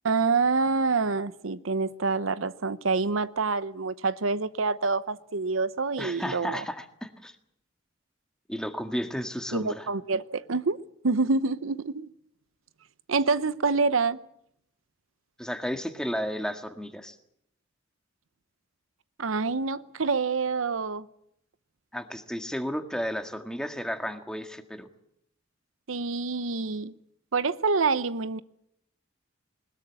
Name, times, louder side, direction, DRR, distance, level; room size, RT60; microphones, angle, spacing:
voice 1, 0.0-6.6 9.5-10.8 11.0-12.1 13.1-14.2 19.2-21.1 25.9-26.9 27.3-28.4, right 4 dB, 85° right, 0.8 m, -27 dB
voice 2, 6.0-7.4 8.5-9.9 15.4-17.2 21.9-24.9, equal, 5° left, 1.8 m, -33 dB
21.0 x 20.0 x 8.4 m
head